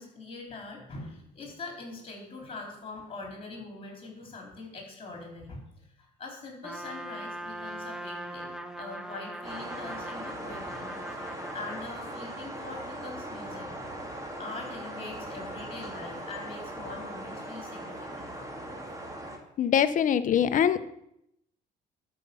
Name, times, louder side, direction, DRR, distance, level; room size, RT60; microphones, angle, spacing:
voice 1, 0.0-13.7 14.1-18.3, left 3 dB, 35° left, 0 dB, 4.1 m, -43 dB
Trumpet, 6.6-11.9, right 1 dB, 5° right, 0.9 m, -40 dB
sound 1, 9.4-19.4, right 1 dB, 20° right, 2.2 m, -39 dB
voice 2, 19.6-20.9, left 9 dB, 50° left, 12 dB, 0.8 m, -23 dB
12.0 x 5.4 x 7.0 m, 0.78 s
cardioid pair, 110°, 17 cm